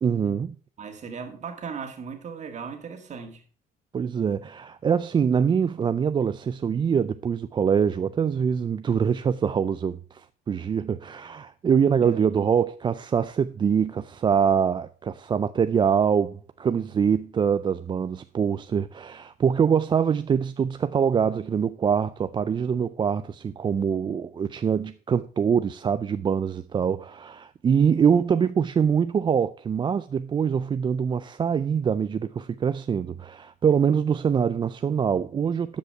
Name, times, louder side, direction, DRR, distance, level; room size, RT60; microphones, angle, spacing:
voice 1, 0.0-0.5 3.9-35.8, right 7 dB, 30° right, 0.4 m, -24 dB
voice 2, 0.8-3.4 12.0-12.2, right 6 dB, 45° right, 1.9 m, -37 dB
12.0 x 5.3 x 4.7 m
cardioid pair, 110°, 17 cm